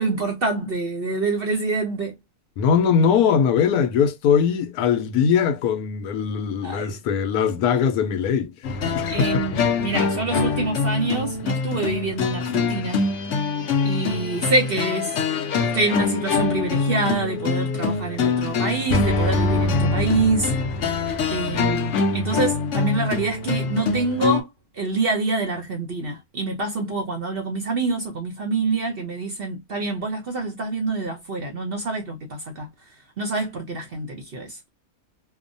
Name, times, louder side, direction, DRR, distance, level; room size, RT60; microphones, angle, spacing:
voice 1, 0.0-2.2 6.6-7.0 9.1-13.0 13.8-15.1 15.6-20.5 21.3-24.5 24.8-32.7 33.2-34.6, right 3 dB, 55° right, 0.7 m, -26 dB
voice 2, 2.6-9.4, left 7 dB, 80° left, 1.1 m, -21 dB
sound 1, 8.6-24.4, left 4 dB, 60° left, 0.8 m, -24 dB
2.9 x 2.1 x 2.5 m
omnidirectional pair, 1.6 m